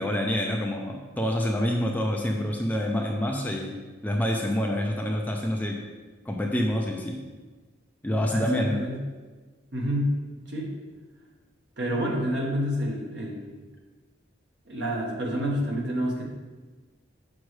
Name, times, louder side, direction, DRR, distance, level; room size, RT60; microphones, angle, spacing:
voice 1, 0.0-5.8 6.3-7.2 8.0-8.8, left 1 dB, 10° left, 0 dB, 0.5 m, -27 dB
voice 2, 8.3-9.0 9.7-10.1 10.5-10.6 11.8-13.6 14.7-16.2, equal, 60° right, -2 dB, 1.4 m, -28 dB
6.3 x 6.2 x 3.2 m, 1.3 s
head